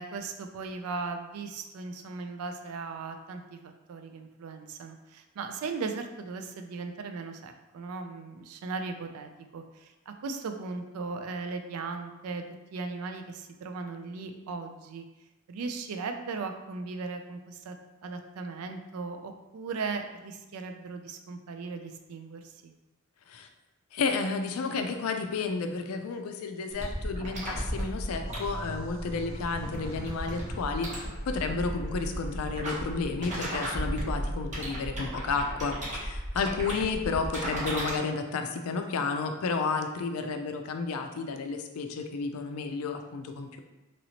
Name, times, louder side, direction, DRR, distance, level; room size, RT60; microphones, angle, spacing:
voice 1, 0.0-12.4 12.7-15.0 15.5-17.8 18.0-22.7, right 4 dB, 80° right, 6 dB, 0.4 m, -37 dB
voice 2, 23.9-43.6, left 4 dB, 75° left, 6 dB, 0.4 m, -32 dB
sound 1, 26.7-37.9, equal, 35° right, 0.8 m, -35 dB
sound 2, 28.2-34.5, left 1 dB, 30° left, 0.6 m, -48 dB
3.0 x 2.8 x 2.8 m, 1.1 s
head